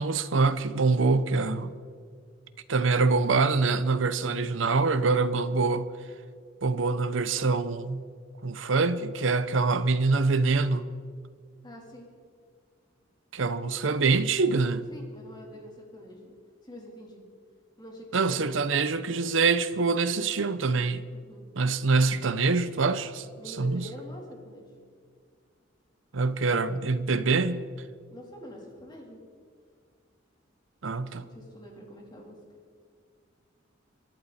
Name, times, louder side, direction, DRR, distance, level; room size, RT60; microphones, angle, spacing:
voice 1, 0.0-1.7 2.7-5.9 6.6-8.0 8.4-10.9 13.3-14.8 18.1-21.1 21.6-23.3 23.6-23.9 26.1-27.7 30.8-31.2, right 4 dB, 90° right, 0.8 m, -25 dB
voice 2, 11.6-12.1 14.9-16.3 16.6-17.2 17.8-18.5 21.1-21.5 23.4-24.7 28.1-29.2 31.2-32.4, equal, 20° left, 3.4 m, -45 dB
26.5 x 11.5 x 4.2 m
head